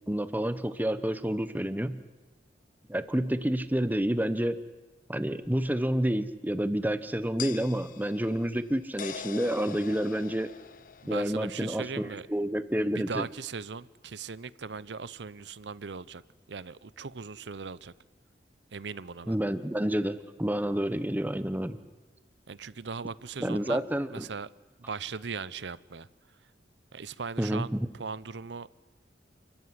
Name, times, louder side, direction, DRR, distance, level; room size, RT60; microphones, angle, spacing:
voice 1, 0.1-2.0 2.9-4.6 5.1-10.5 11.1-13.2 19.3-21.8 23.4-24.3 27.4-27.9, right 1 dB, 10° right, 12 dB, 1.0 m, -29 dB
sound 1, 5.4-5.5 7.4-11.8, left 8 dB, 50° left, 0.7 m, -43 dB
voice 2, 11.0-12.3 12.9-16.2 16.5-17.9 18.7-19.4 22.5-23.8 24.1-24.5 24.8-26.1 26.9-28.7, right 5 dB, 80° right, 19 dB, 0.7 m, -39 dB
29.0 x 14.5 x 9.7 m, 1.2 s
head